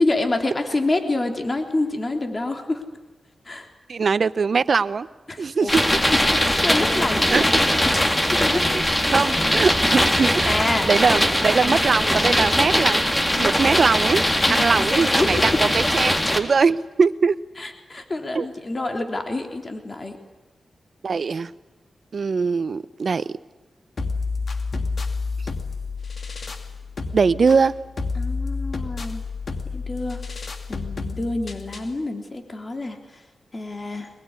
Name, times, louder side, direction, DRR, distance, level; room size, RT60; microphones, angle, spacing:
voice 1, 0.0-2.8 3.5-3.7 5.3-5.7 6.0-7.5 7.9-8.0 8.3-8.7 10.4-11.2 11.6-11.8 14.5-15.6 17.6-20.2 28.2-29.2 29.7-30.2 30.7-33.2 33.5-34.1, left 2 dB, 35° left, 5 dB, 3.6 m, -27 dB
voice 2, 3.9-5.1 5.4-5.9 7.3-7.4 8.7-8.8 9.1-10.6 10.8-17.3 18.3-18.5 21.0-21.5 22.1-23.2 27.1-27.7, right 5 dB, 60° right, 15 dB, 1.0 m, -21 dB
sound 1, 5.7-16.4, equal, 15° left, 3.6 m, -20 dB
sound 2, 24.0-32.0, left 4 dB, 60° left, 2.5 m, -30 dB
24.5 x 21.5 x 9.9 m, 1.1 s
cardioid pair, 60°, 0 cm